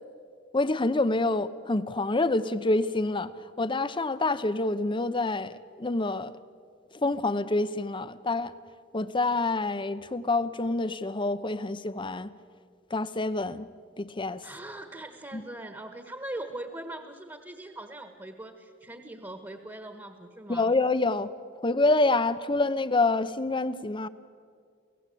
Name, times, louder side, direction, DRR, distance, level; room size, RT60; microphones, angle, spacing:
voice 1, 0.5-3.3 3.6-6.3 6.9-8.5 8.9-12.3 12.9-13.7 14.0-14.4 15.3-15.4 20.5-21.3 21.6-24.1, left 2 dB, 25° left, 14 dB, 0.8 m, -27 dB
voice 2, 14.4-20.7, right 1 dB, 15° right, 7 dB, 1.4 m, -41 dB
28.5 x 17.5 x 8.5 m, 2.1 s
head